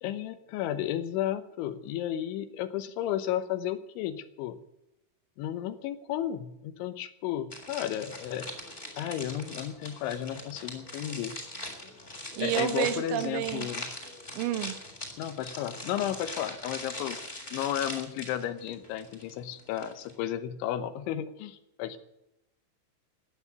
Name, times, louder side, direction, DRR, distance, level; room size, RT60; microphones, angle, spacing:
voice 1, 0.0-4.6 5.4-8.5 9.0-11.4 12.4-13.9 15.2-17.2 17.5-22.0, left 11 dB, 80° left, 11 dB, 3.2 m, -33 dB
sound 1, 7.5-20.2, left 1 dB, 15° left, 2.9 m, -41 dB
voice 2, 12.4-13.7 14.4-14.8, right 12 dB, 80° right, 11 dB, 3.5 m, -30 dB
15.0 x 9.7 x 8.3 m, 0.89 s
omnidirectional pair, 5.6 m